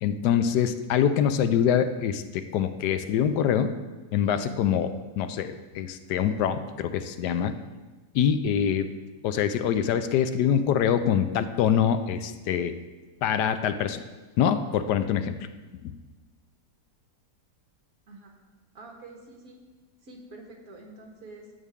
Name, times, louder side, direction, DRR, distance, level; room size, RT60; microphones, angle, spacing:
voice 1, 0.0-3.7 4.1-7.5 8.1-8.9 9.2-12.8 13.2-14.0 14.4-15.3 15.8-15.9, left 8 dB, 80° left, 10 dB, 1.2 m, -24 dB
voice 2, 18.7-19.6 20.0-21.5, right 2 dB, 60° right, 1 dB, 1.9 m, -47 dB
12.5 x 8.3 x 3.6 m, 1.3 s
omnidirectional pair, 1.8 m